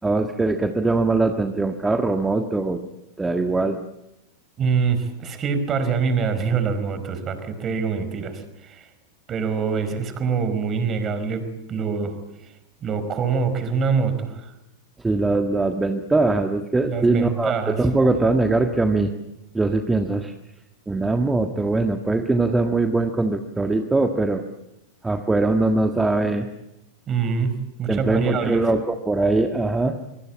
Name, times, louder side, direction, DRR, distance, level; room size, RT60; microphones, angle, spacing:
voice 1, 0.0-2.8 3.2-3.8 15.0-19.1 19.5-20.3 20.9-24.4 25.0-26.5 27.9-30.0, right 2 dB, 10° right, 6 dB, 1.6 m, -21 dB
voice 2, 4.6-8.9 9.3-12.2 12.8-14.5 16.9-17.8 27.1-27.5 27.8-28.6, right 5 dB, 25° right, 10 dB, 4.7 m, -24 dB
25.0 x 24.5 x 8.7 m, 0.91 s
figure-of-eight pair, 90°, 0 cm